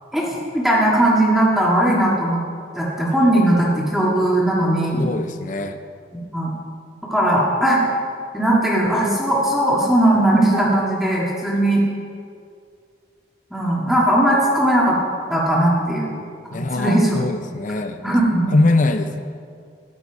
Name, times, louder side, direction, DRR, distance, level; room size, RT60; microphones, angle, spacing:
voice 1, 0.1-2.4 2.8-5.0 6.3-6.5 7.1-7.8 8.3-11.8 13.5-15.0 15.3-16.1 16.8-17.1 18.0-18.5, right 1 dB, ahead, -6 dB, 1.8 m, -18 dB
voice 2, 5.0-5.8 16.5-18.0 18.5-19.2, left 2 dB, 45° left, 7 dB, 0.5 m, -21 dB
13.0 x 11.0 x 4.7 m, 2.3 s
head